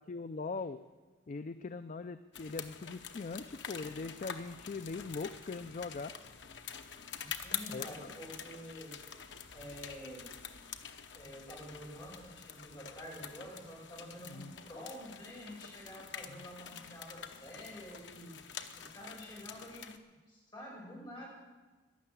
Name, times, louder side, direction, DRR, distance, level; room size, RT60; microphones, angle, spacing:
voice 1, 0.1-0.8 1.3-6.1 7.7-8.1 14.2-14.5 16.3-16.5, left 4 dB, 45° left, 11 dB, 0.4 m, -41 dB
sound 1, 2.3-20.0, left 8 dB, 80° left, 1.0 m, -47 dB
voice 2, 7.1-8.9 9.5-10.3 11.1-18.3 18.8-19.9 20.3-21.3, equal, 25° left, -4 dB, 6.2 m, -48 dB
12.5 x 11.0 x 8.6 m, 1.3 s
head